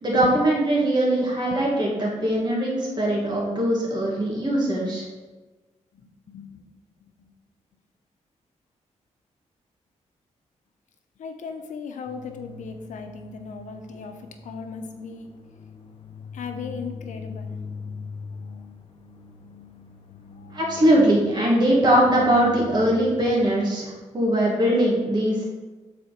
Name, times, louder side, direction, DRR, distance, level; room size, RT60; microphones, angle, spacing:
voice 1, 0.0-5.0 20.5-25.4, right 1 dB, 35° right, -4 dB, 2.1 m, -21 dB
voice 2, 6.3-6.7 7.2-7.3 11.2-15.3 16.3-17.6 20.4-20.6, left 5 dB, 85° left, 6 dB, 0.8 m, -37 dB
sound 1, 12.1-23.6, left 4 dB, 50° left, 0.9 m, -41 dB
7.1 x 4.3 x 5.1 m, 1.2 s
cardioid pair, 95°, 13 cm